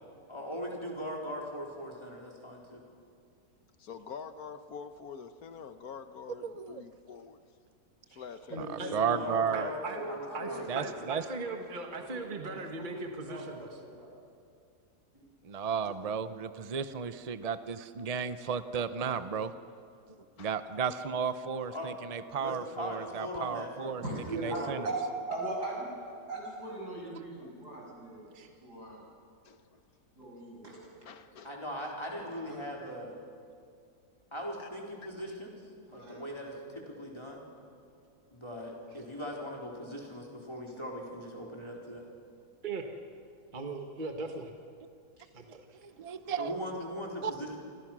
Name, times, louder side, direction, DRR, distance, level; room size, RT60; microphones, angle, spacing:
voice 1, 0.3-2.8 8.8-11.0 21.7-21.9 22.4-24.9 31.4-33.2 34.3-35.5 35.9-37.5 38.3-42.1 46.4-47.6, equal, 15° left, -2 dB, 4.1 m, -40 dB
voice 2, 3.8-7.4 8.2-8.7 12.6-12.7 20.4-20.5 29.5-29.6 31.0-31.5 34.6-34.7, left 6 dB, 65° left, 10 dB, 1.5 m, -46 dB
voice 3, 6.4-6.8 8.6-8.7 8.9-9.7 10.7-11.2 15.4-19.5 20.4-24.0 24.4-24.9 46.0-46.5 47.2-47.3, right 6 dB, 50° right, 12 dB, 0.4 m, -33 dB
voice 4, 8.5-9.4 9.9-14.1 24.0-25.0 25.3-25.9 26.3-28.3 28.6-29.0 30.2-30.8 32.4-32.6 35.9-36.2, right 2 dB, 85° right, -2 dB, 7.3 m, -40 dB
voice 5, 9.5-13.7 15.9-16.0 28.3-28.5 42.6-42.8 43.5-44.5 45.3-45.8, right 3 dB, 30° right, 4 dB, 1.5 m, -39 dB
28.0 x 25.5 x 6.2 m, 2.4 s
omnidirectional pair, 1.7 m